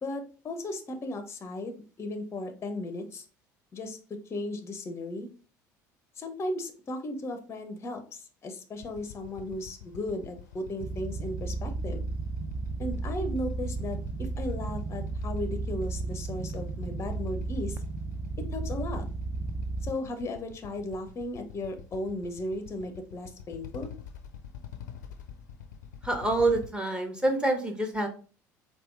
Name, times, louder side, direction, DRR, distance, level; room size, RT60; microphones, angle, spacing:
voice 1, 0.0-3.2 3.7-4.0 4.3-5.3 6.2-12.1 12.8-17.8 18.5-19.0 19.8-23.9, left 1 dB, 30° left, 7 dB, 0.5 m, -36 dB
Motorcycle / Idling, 8.8-26.7, left 7 dB, 75° left, 0.4 m, -46 dB
sound 1, 10.8-19.9, right 3 dB, 30° right, 0.3 m, -34 dB
voice 2, 26.0-28.1, right 2 dB, 10° right, 4 dB, 0.8 m, -26 dB
4.2 x 2.3 x 2.4 m, 0.37 s
figure-of-eight pair, 60°, 10 cm